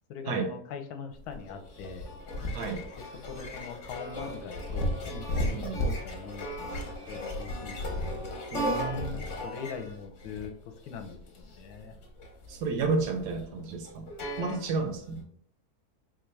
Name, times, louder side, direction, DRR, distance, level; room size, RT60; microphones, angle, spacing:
voice 1, 0.1-2.2 3.2-8.1 9.1-10.5 10.8-12.0, left 6 dB, 75° left, 6 dB, 1.1 m, -42 dB
sound 1, 1.2-15.1, equal, 55° left, 1.0 m, -35 dB
voice 2, 5.5-5.8 8.5-9.2 12.5-14.1 14.4-15.3, right 4 dB, 75° right, 4 dB, 1.2 m, -31 dB
4.0 x 2.3 x 3.2 m, 0.65 s
omnidirectional pair, 1.8 m